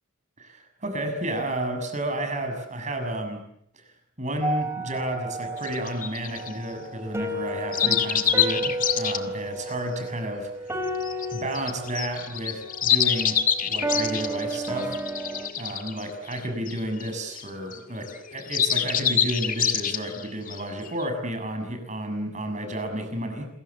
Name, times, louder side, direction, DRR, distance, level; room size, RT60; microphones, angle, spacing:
voice 1, 0.4-3.4 3.7-3.8 4.2-10.5 11.3-15.0 15.6-23.5, right 1 dB, 35° right, 6 dB, 6.7 m, -31 dB
sound 1, 4.4-15.5, right 1 dB, 15° right, 3.6 m, -33 dB
sound 2, 5.6-6.5 7.7-9.2 10.9-17.8 18.0-21.1, left 9 dB, 40° left, 2.1 m, -26 dB
28.5 x 22.5 x 8.3 m, 0.74 s
head